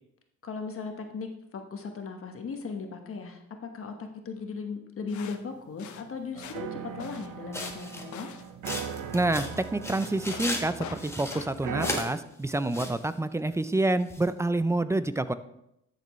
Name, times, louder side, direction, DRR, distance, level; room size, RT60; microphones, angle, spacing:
voice 1, 0.4-3.4 3.7-8.3, left 4 dB, 45° left, 5 dB, 1.1 m, -37 dB
sound 1, 5.1-12.1, left 8 dB, 70° left, 0.8 m, -44 dB
sound 2, 6.3-12.0, right 8 dB, 85° right, 0.8 m, -39 dB
sound 3, 7.5-8.2 8.7-10.6 11.0-12.1 12.5-13.0 14.1-14.2, left 1 dB, 10° left, 1.4 m, -35 dB
voice 2, 9.1-15.3, right 2 dB, 10° right, 13 dB, 0.4 m, -28 dB
11.5 x 6.7 x 3.1 m, 0.80 s
cardioid pair, 90°, 30 cm